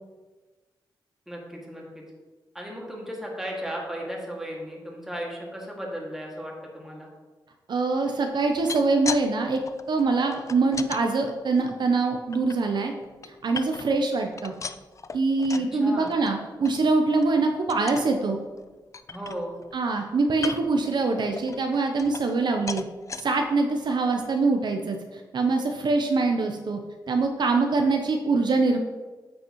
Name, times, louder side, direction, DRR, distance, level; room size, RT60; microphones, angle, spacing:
voice 1, 1.3-2.0 2.5-7.1 15.5-16.2 19.1-19.5, equal, 5° right, -2 dB, 2.0 m, -35 dB
voice 2, 7.7-9.6 9.9-12.9 13.4-14.5 15.1-18.4 19.7-22.8 23.2-26.8 27.1-28.8, right 3 dB, 65° right, 4 dB, 0.6 m, -24 dB
sound 1, 8.4-9.3 9.5-11.0 11.6-12.6 13.0-14.0 14.3-15.7 16.1-16.3 16.6-16.7 17.1-17.3 17.7-18.1 18.6-18.7 18.9-19.7 20.3-20.8 21.4-22.4 22.7-23.2 23.8-23.9 24.2-24.3, left 5 dB, 40° left, 0.4 m, -37 dB
9.0 x 5.4 x 3.0 m, 1.3 s
cardioid pair, 75°, 8 cm